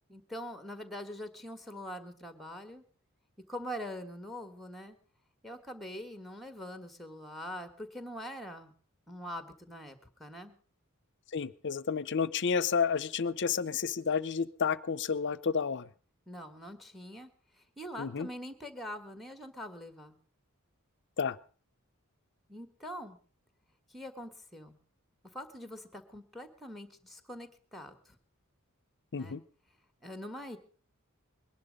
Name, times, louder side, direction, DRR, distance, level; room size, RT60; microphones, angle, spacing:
voice 1, 0.1-2.8 3.5-5.0 5.4-8.7 9.1-10.6 16.3-20.2 22.5-23.2 23.9-24.8 25.3-28.2 29.1-29.4 30.0-30.6, equal, ahead, 10 dB, 1.6 m, -43 dB
voice 2, 11.3-15.8 18.0-18.3 21.2-21.4 29.1-29.4, left 6 dB, 55° left, 19 dB, 0.7 m, -31 dB
21.5 x 11.0 x 5.2 m, 0.41 s
head